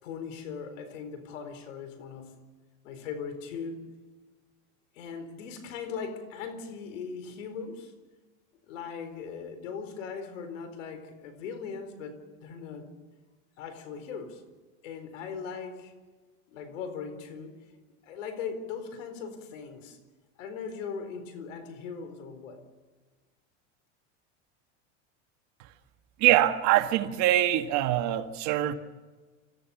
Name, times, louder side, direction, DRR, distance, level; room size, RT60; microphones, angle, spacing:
voice 1, 0.0-2.4 2.8-3.8 4.9-7.9 8.7-12.9 13.6-14.4 14.8-15.9 16.5-17.6 18.0-20.0 20.4-22.6, left 6 dB, 85° left, 4.3 m, -39 dB
voice 2, 26.2-28.7, right 13 dB, 50° right, 1.7 m, -23 dB
27.5 x 15.0 x 7.1 m
supercardioid pair, 135°, 37 cm